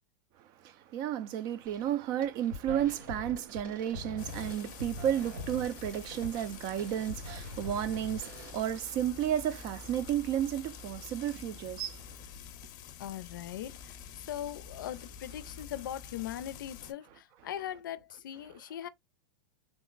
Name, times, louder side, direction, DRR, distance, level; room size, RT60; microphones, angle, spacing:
voice 1, 0.4-12.2, right 10 dB, 40° right, 0.4 m, -32 dB
sound 1, 1.6-1.9 2.2-8.5, left 1 dB, 90° right, 2.5 m, -43 dB
Frying (food), 4.2-16.9, left 7 dB, 40° left, 0.6 m, -48 dB
voice 2, 13.0-18.9, left 11 dB, 90° left, 0.4 m, -40 dB
3.6 x 2.0 x 3.8 m
supercardioid pair, 145°, 11 cm